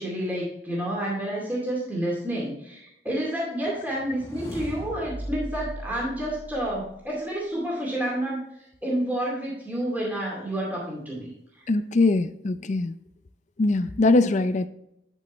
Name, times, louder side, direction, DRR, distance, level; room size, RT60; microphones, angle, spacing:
voice 1, 0.0-11.3 11.6-11.7, right 1 dB, 10° right, 2.3 m, -29 dB
sound 1, 3.9-7.1, equal, 15° left, 1.6 m, -38 dB
voice 2, 11.7-12.9 13.6-14.7, left 2 dB, 40° left, 0.4 m, -22 dB
11.5 x 5.4 x 3.0 m
head